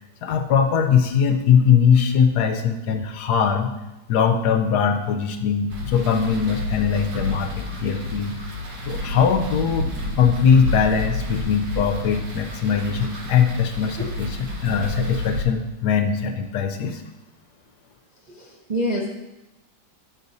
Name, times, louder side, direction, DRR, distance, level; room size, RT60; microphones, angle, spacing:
voice 1, 0.2-3.7 4.1-8.4 8.9-9.9 10.2-17.0, left 7 dB, 70° left, 6 dB, 1.1 m, -21 dB
sound 1, 5.7-15.4, left 1 dB, 75° right, 1.9 m, -30 dB
voice 2, 18.3-19.1, equal, 45° right, -3 dB, 0.5 m, -26 dB
8.3 x 6.3 x 4.0 m, 0.98 s
omnidirectional pair, 2.0 m